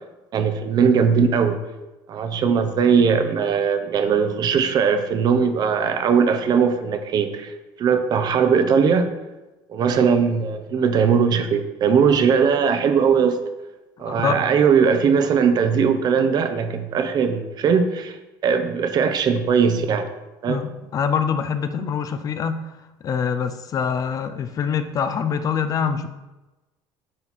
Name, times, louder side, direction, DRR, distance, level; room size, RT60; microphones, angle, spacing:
voice 1, 0.3-1.6 2.1-7.5 7.8-9.1 9.7-13.4 14.0-18.2 18.4-20.1 20.4-20.6, right 6 dB, 45° right, 8 dB, 0.8 m, -19 dB
voice 2, 14.0-14.3 20.5-26.1, left 7 dB, 35° left, 10 dB, 0.6 m, -25 dB
8.6 x 4.3 x 4.2 m, 1.1 s
cardioid pair, 125°, 10 cm